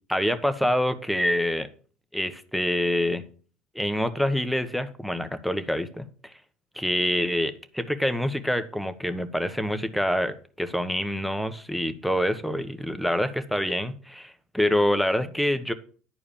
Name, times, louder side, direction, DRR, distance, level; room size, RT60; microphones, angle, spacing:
voice 1, 0.1-1.7 2.1-3.2 3.7-6.3 6.7-15.7, equal, ahead, 9 dB, 1.2 m, -26 dB
11.0 x 4.8 x 7.4 m, 0.41 s
supercardioid pair, 100°, 0 cm